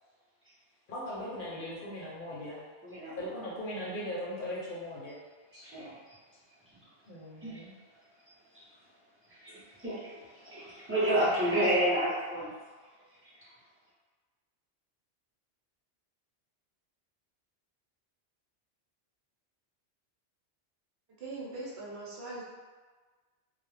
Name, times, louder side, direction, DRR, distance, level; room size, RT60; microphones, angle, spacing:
voice 1, 0.9-2.6 3.2-5.2 5.5-5.6 7.1-7.7, left 1 dB, 55° left, -7 dB, 0.7 m, -39 dB
voice 2, 2.8-3.4 5.6-6.2 7.4-7.6 8.5-8.6 9.3-12.5 13.2-13.3, right 1 dB, 15° right, -10 dB, 0.5 m, -31 dB
voice 3, 21.2-22.5, right 2 dB, 65° right, -5 dB, 0.9 m, -41 dB
2.3 x 2.0 x 3.1 m, 1.4 s
omnidirectional pair, 1.2 m